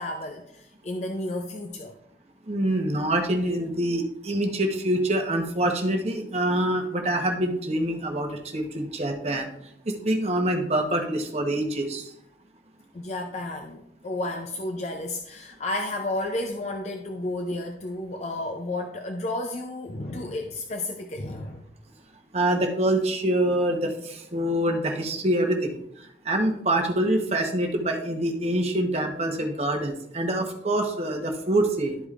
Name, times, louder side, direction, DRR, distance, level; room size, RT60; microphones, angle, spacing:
voice 1, 0.0-1.9 12.9-21.6, left 2 dB, 35° left, 4 dB, 0.5 m, -32 dB
voice 2, 2.5-9.5 9.8-12.1 22.3-32.0, right 1 dB, 35° right, 3 dB, 1.0 m, -25 dB
12.0 x 5.0 x 2.5 m, 0.74 s
head